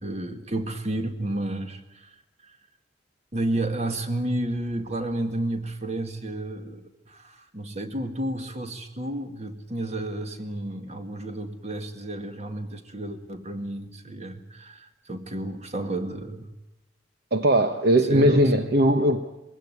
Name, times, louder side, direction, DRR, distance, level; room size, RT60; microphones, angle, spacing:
voice 1, 0.0-2.2 2.4-2.6 3.3-16.5 18.1-18.7, right 1 dB, 35° right, 7 dB, 2.0 m, -31 dB
voice 2, 17.3-19.2, right 1 dB, 60° right, 7 dB, 1.1 m, -19 dB
22.0 x 16.5 x 9.8 m, 0.93 s
head